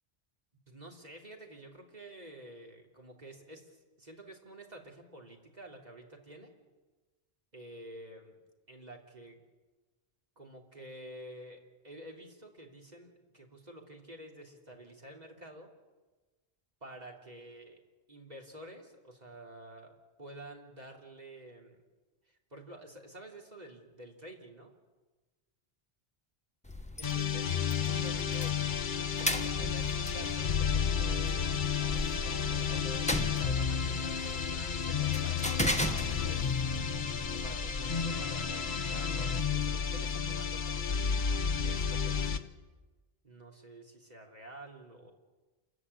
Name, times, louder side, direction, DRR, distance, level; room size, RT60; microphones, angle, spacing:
voice 1, 0.7-6.5 7.5-8.4 8.7-9.4 10.4-15.7 16.8-17.8 18.1-21.8 22.3-24.7 27.0-28.6 29.3-31.5 31.9-36.4 37.3-41.0 41.6-42.5 43.2-45.1, right 1 dB, 40° right, 1 dB, 3.3 m, -50 dB
sound 1, 26.6-39.0, left 1 dB, 5° left, 1.3 m, -38 dB
sound 2, 27.0-42.5, left 7 dB, 50° left, 1.1 m, -32 dB
27.5 x 15.0 x 9.9 m, 1.2 s
omnidirectional pair, 1.1 m